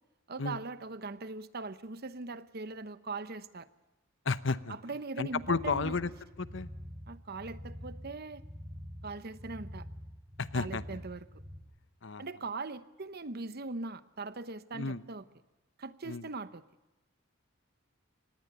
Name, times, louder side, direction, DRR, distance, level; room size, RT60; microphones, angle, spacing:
voice 1, 0.3-3.7 4.7-5.9 7.1-8.4 9.0-9.9 10.5-11.2 12.2-15.2 15.8-16.6, right 3 dB, 50° right, 13 dB, 1.0 m, -40 dB
voice 2, 4.2-4.7 5.2-6.1 6.4-6.7 10.4-11.0 12.0-12.3 14.7-15.0 16.0-16.3, left 4 dB, 65° left, 14 dB, 0.9 m, -32 dB
sound 1, 5.3-11.6, equal, 35° right, 4.5 m, -46 dB
25.0 x 20.0 x 6.8 m, 1.0 s
head